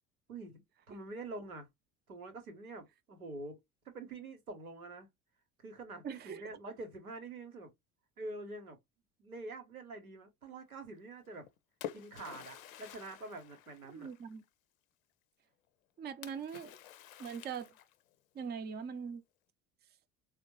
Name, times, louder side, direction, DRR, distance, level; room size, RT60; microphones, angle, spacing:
voice 1, 0.3-1.7 2.1-3.6 3.9-5.1 5.6-7.7 8.2-8.8 9.2-11.5 11.9-14.1, right 2 dB, 90° right, 0.9 m, -46 dB
voice 2, 6.0-6.4 13.9-14.4 16.0-16.8 17.2-17.7 18.3-19.2, right 6 dB, 25° right, 0.5 m, -41 dB
Splash splatter, 11.2-14.4 16.2-18.2, left 11 dB, 70° left, 0.6 m, -49 dB
4.2 x 2.0 x 2.9 m
figure-of-eight pair, 65°, 42 cm